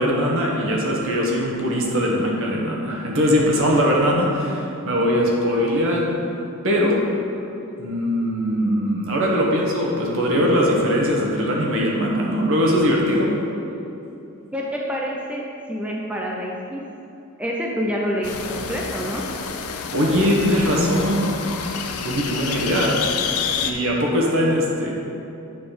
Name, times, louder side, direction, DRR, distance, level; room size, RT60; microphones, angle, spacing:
voice 1, 0.0-6.2 6.6-7.0 7.8-13.3 19.9-21.3 21.8-23.0 23.6-24.9, equal, 60° right, -2 dB, 1.3 m, -21 dB
voice 2, 14.5-15.4 15.7-16.8 17.4-19.2, equal, 5° right, -2 dB, 0.5 m, -27 dB
sound 1, 18.2-23.7, left 6 dB, 70° left, 0.5 m, -28 dB
8.8 x 4.1 x 4.9 m, 2.8 s
head